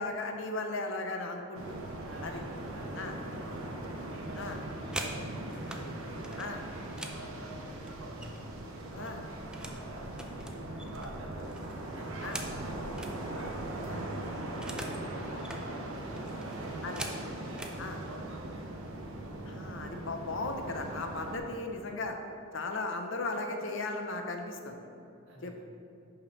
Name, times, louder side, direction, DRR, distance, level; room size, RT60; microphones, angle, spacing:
voice 1, 0.0-1.8 2.2-2.4 3.0-3.2 4.4-4.6 6.4-6.6 8.9-9.2 12.2-12.4 13.9-14.0 16.8-17.0 17.8-18.0 19.5-22.2 22.5-24.9 25.4-25.6, left 2 dB, 65° left, 4 dB, 0.7 m, -36 dB
sound 1, 1.5-21.4, right 1 dB, 85° right, 0.9 m, -40 dB
voice 2, 2.0-3.6 4.1-8.3 8.7-11.5 11.8-12.8 13.1-17.1 17.4-18.6 21.3-21.5 25.3-25.6, right 2 dB, 65° right, -2 dB, 1.3 m, -49 dB
sound 2, 4.9-5.8 6.2-8.6 8.9-9.8 10.1-13.2 13.5-13.6 13.8-15.0 15.3-15.6 16.2-17.8 18.6-18.8 19.1-19.4 19.7-20.3, right 1 dB, 5° right, 0.4 m, -43 dB
5.6 x 5.2 x 5.4 m, 2.7 s
head